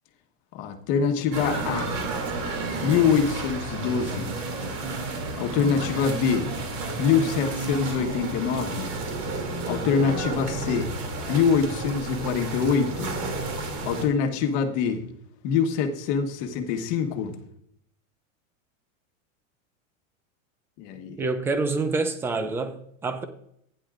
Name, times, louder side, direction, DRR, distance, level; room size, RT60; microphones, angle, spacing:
voice 1, 0.5-1.9 2.8-4.3 5.4-6.5 7.0-8.9 9.6-10.9 11.3-13.1 13.8-15.0 15.4-17.4 20.8-21.2, left 6 dB, 45° left, 1.4 m, -24 dB
sound 1, 1.3-14.1, right 3 dB, 45° right, 2.7 m, -31 dB
voice 2, 21.2-23.2, right 3 dB, 5° right, 0.4 m, -27 dB
15.5 x 10.0 x 2.5 m
supercardioid pair, 150°, 40 cm